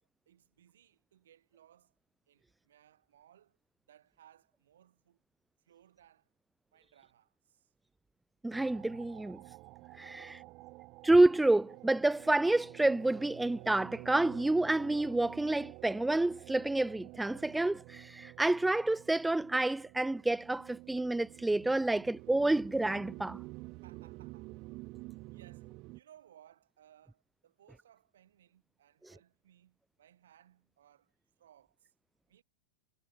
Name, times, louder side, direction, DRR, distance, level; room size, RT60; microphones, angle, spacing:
voice 1, 0.0-2.0 2.3-3.6 3.9-5.2 5.6-6.3 6.7-7.7 10.0-10.7 23.8-24.6 25.3-31.1 31.4-31.9 32.3-32.4, right 10 dB, 60° right, 7.9 m, -63 dB
voice 2, 8.4-9.4 10.0-10.4 11.0-23.4, right 2 dB, 5° right, 0.3 m, -29 dB
sound 1, 8.5-26.0, right 22 dB, 40° right, 2.3 m, -50 dB
figure-of-eight pair, 90°, 0 cm